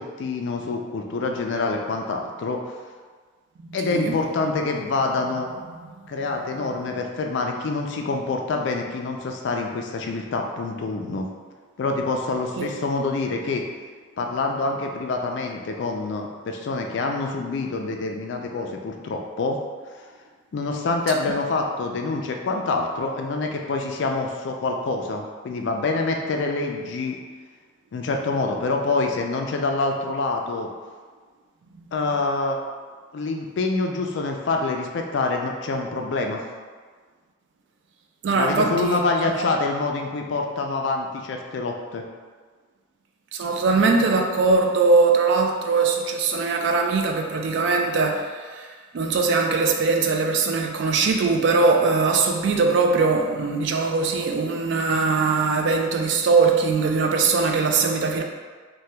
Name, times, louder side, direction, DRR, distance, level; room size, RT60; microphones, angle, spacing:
voice 1, 0.0-2.6 3.7-5.5 6.1-11.3 11.8-13.6 14.2-19.6 20.5-27.2 27.9-30.7 31.9-32.6 33.1-36.4 38.3-42.0, left 3 dB, 60° left, 3 dB, 0.3 m, -26 dB
voice 2, 3.6-4.2 5.7-5.9 12.6-12.7 31.8-31.9 38.2-39.0 43.3-58.2, right 4 dB, 60° right, 3 dB, 0.3 m, -21 dB
2.8 x 2.2 x 3.2 m, 1.5 s
head